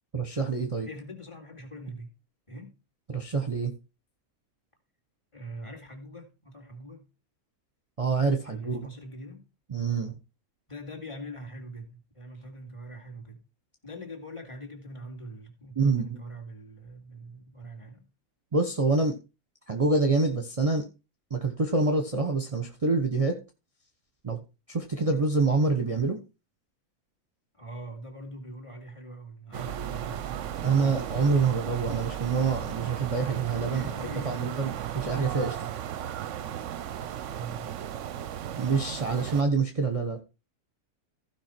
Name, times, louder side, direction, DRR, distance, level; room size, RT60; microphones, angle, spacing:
voice 1, 0.1-0.9 3.1-3.7 8.0-8.9 9.7-10.1 15.8-16.2 18.5-19.2 19.7-20.8 21.3-23.4 24.2-24.4 24.7-26.2 30.6-35.7 38.6-40.2, right 4 dB, 25° right, 1.2 m, -26 dB
voice 2, 0.8-2.1 2.5-2.7 5.3-7.0 8.4-9.4 10.7-13.4 13.8-18.0 27.5-30.4 33.6-35.0 37.2-37.7, right 1 dB, 20° left, 2.8 m, -43 dB
sound 1, 29.5-39.4, right 10 dB, 60° right, 0.9 m, -35 dB
15.5 x 5.4 x 4.5 m
omnidirectional pair, 1.6 m